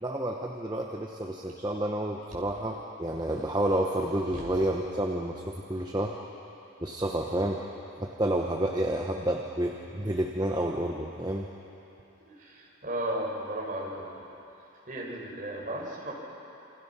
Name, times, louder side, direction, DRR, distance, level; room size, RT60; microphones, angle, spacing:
voice 1, 0.0-6.2 6.8-7.7 8.0-11.5, right 1 dB, 20° right, 0 dB, 1.1 m, -30 dB
voice 2, 12.2-14.3 14.9-16.1, right 1 dB, 40° right, -3 dB, 5.5 m, -35 dB
28.0 x 27.0 x 6.0 m, 2.9 s
head